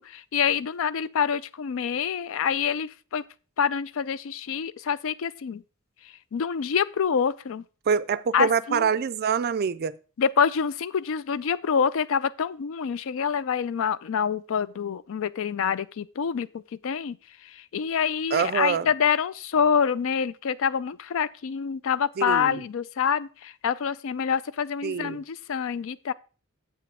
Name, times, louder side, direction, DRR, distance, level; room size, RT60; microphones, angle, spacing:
voice 1, 0.0-3.2 3.6-5.6 6.0-7.6 8.3-8.9 10.2-26.1, left 7 dB, 65° left, 0.4 m, -26 dB
voice 2, 7.9-10.0 18.3-18.9 22.2-22.6 24.8-25.2, right 6 dB, 50° right, 0.4 m, -25 dB
9.2 x 7.5 x 3.5 m
head